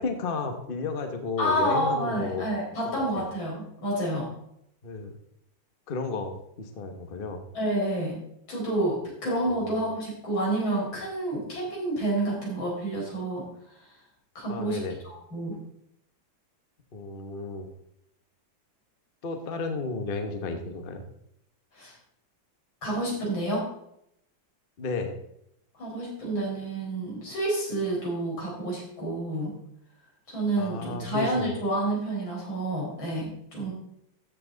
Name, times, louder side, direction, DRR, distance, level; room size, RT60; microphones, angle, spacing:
voice 1, 0.0-2.5 2.8-3.3 4.8-5.2 5.9-7.5 9.5-9.9 14.5-15.0 16.9-17.7 19.2-21.0 24.8-25.2 30.6-31.5, left 3 dB, 35° left, 6 dB, 1.1 m, -33 dB
voice 2, 1.4-4.3 7.5-8.2 8.5-13.5 14.4-14.8 15.0-15.6 21.8-22.0 22.8-23.6 25.8-29.5 30.3-33.7, right 1 dB, 85° left, -4 dB, 5.5 m, -29 dB
13.5 x 7.6 x 3.9 m, 0.76 s
omnidirectional pair, 2.1 m